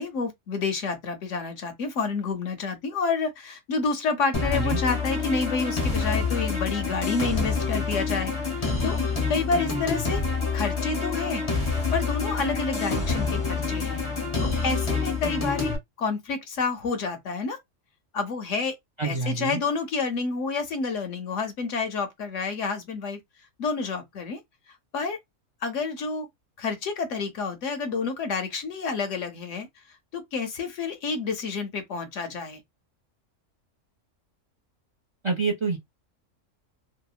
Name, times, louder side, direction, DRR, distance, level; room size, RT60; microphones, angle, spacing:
voice 1, 0.0-9.0 9.3-10.2 10.5-11.4 11.9-14.0 14.4-15.7 16.0-17.6 18.1-18.8 19.0-23.2 23.6-24.4 24.9-25.2 25.6-26.3 26.6-29.7 30.1-32.6, left 4 dB, 70° left, 0.9 m, -29 dB
sound 1, 4.3-15.8, left 4 dB, 30° left, 0.6 m, -27 dB
voice 2, 19.0-19.6 35.2-35.8, right 4 dB, 45° right, 0.4 m, -27 dB
2.8 x 2.1 x 2.3 m
omnidirectional pair, 1.4 m